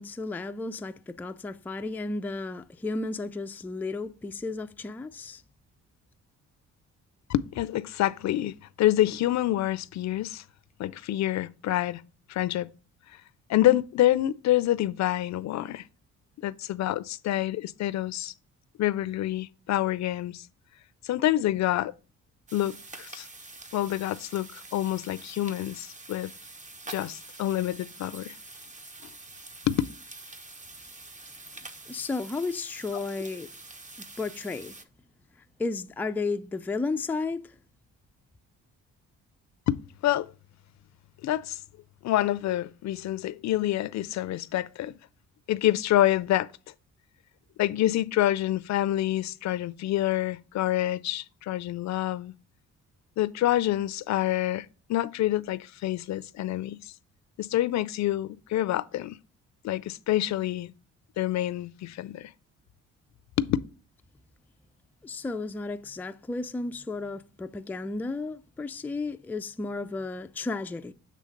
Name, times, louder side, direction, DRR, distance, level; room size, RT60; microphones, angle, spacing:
voice 1, 0.0-5.4 31.9-33.5 34.2-34.7 35.6-37.5 65.0-70.9, left 3 dB, 5° left, 0.3 m, -33 dB
voice 2, 7.3-10.4 10.8-12.0 12.3-12.7 13.5-15.8 16.4-18.3 18.8-20.5 21.0-21.9 22.5-23.3 23.7-26.3 26.9-28.4 29.7-29.8 39.7-40.3 41.2-41.6 42.0-45.0 45.5-46.5 47.6-52.3 53.2-56.9 57.4-59.2 59.6-60.7 61.2-62.3 63.4-63.6, left 14 dB, 65° left, 0.5 m, -27 dB
sound 1, 22.5-34.8, right 2 dB, 25° right, 0.8 m, -46 dB
7.6 x 3.3 x 5.1 m
cardioid pair, 90°, 30 cm